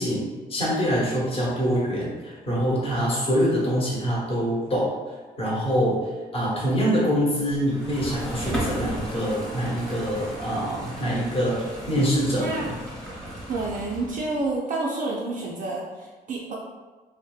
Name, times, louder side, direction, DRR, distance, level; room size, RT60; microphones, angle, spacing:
voice 1, 0.0-4.9 5.4-12.7, equal, 35° left, -6 dB, 0.9 m, -25 dB
sound 1, 7.5-14.5, right 1 dB, 5° left, 0.8 m, -35 dB
voice 2, 13.5-16.6, right 2 dB, 50° right, -4 dB, 0.4 m, -29 dB
2.6 x 2.1 x 2.3 m, 1.3 s
cardioid pair, 110°, 17 cm